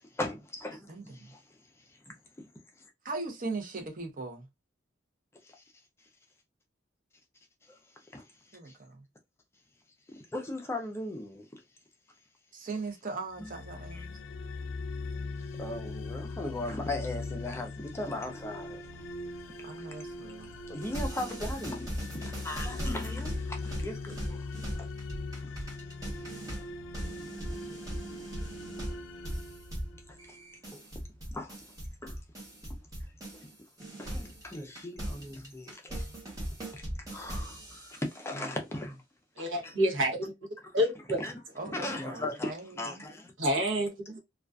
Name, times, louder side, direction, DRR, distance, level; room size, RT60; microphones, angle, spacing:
voice 1, 0.0-1.6 1.9-2.1 5.4-5.6 7.6-8.8 10.1-11.5 13.4-13.5 13.9-14.1 15.5-19.1 19.8-20.0 20.7-24.5 24.8-24.9 25.4-26.4 29.3-29.4 30.1-30.4 30.7-30.8 31.3-31.6 32.0-32.2 33.3-33.5 34.0-36.1 36.7-36.9 37.1-39.0 39.4-39.7 41.2-41.4 41.6-43.3, left 1 dB, 15° left, 0.4 m, -39 dB
voice 2, 0.9-1.3 3.0-4.5 8.5-9.0 12.5-14.1 19.6-20.5 27.2-27.3 27.7-27.8 38.3-38.4 41.6-43.0, right 3 dB, 45° right, 0.6 m, -39 dB
sound 1, 13.3-30.4, left 3 dB, 90° left, 0.4 m, -41 dB
sound 2, 20.8-33.5 33.8-38.2, right 1 dB, 20° right, 0.9 m, -39 dB
voice 3, 39.4-40.3 40.7-41.2 43.4-44.2, equal, 80° right, 0.9 m, -28 dB
2.4 x 2.3 x 2.3 m
head